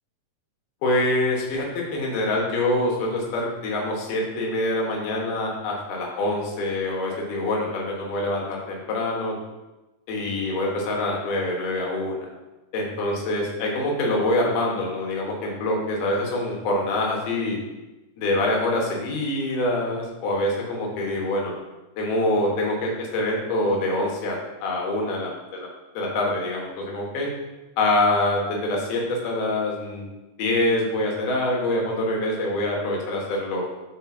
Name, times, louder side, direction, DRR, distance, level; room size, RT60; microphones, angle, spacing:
voice 1, 0.8-9.3 10.1-12.3 12.7-17.6 18.2-21.5 22.0-25.3 25.9-27.3 27.8-30.1 30.4-33.7, left 1 dB, 75° left, -1 dB, 2.8 m, -25 dB
5.8 x 4.9 x 3.7 m, 1.1 s
omnidirectional pair, 3.8 m